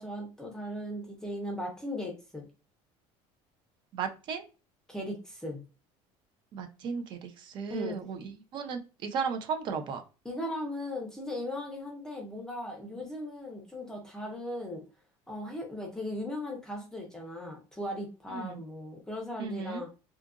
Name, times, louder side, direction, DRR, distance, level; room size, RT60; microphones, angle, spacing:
voice 1, 0.0-2.5 4.9-5.6 7.7-8.0 10.2-14.8 15.3-19.9, left 1 dB, 5° left, 0 dB, 0.6 m, -38 dB
voice 2, 3.9-4.4 6.5-10.0 18.3-18.6 19.4-19.8, right 6 dB, 45° right, 7 dB, 0.5 m, -35 dB
2.6 x 2.5 x 2.4 m, 0.32 s
cardioid pair, 165°, 12 cm